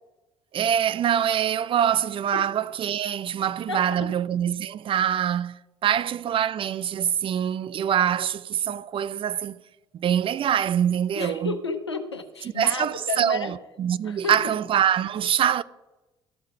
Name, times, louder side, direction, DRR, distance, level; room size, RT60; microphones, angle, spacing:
voice 1, 0.5-9.6 9.9-11.6 12.6-15.6, right 9 dB, 40° right, 0.4 m, -24 dB
voice 2, 3.7-4.1 11.2-13.5 14.0-14.5, left 3 dB, 90° left, 0.8 m, -32 dB
13.0 x 5.6 x 6.5 m
figure-of-eight pair, 50°, 14 cm